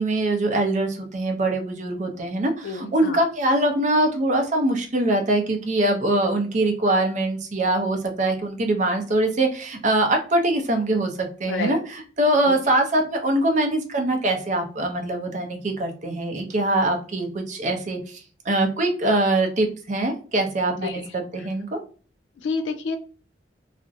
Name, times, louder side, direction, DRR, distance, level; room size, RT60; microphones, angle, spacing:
voice 1, 0.0-18.2 18.5-21.8, right 1 dB, 40° right, 4 dB, 0.5 m, -23 dB
voice 2, 2.6-3.2 11.5-11.8 12.5-12.6 20.8-21.1 22.4-23.0, left 4 dB, 85° left, 6 dB, 0.3 m, -29 dB
2.4 x 2.0 x 2.5 m, 0.39 s
head